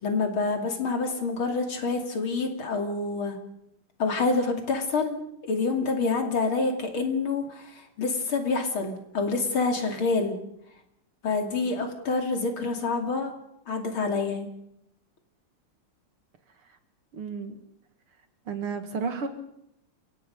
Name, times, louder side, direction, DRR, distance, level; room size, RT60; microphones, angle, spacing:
voice 1, 0.0-3.4 4.0-5.2 5.5-10.4 11.2-13.3 13.7-14.5, left 4 dB, 75° left, 4 dB, 3.6 m, -27 dB
voice 2, 17.1-17.6 18.5-19.3, right 5 dB, 80° right, 8 dB, 2.9 m, -32 dB
29.5 x 17.5 x 5.3 m, 0.78 s
omnidirectional pair, 2.3 m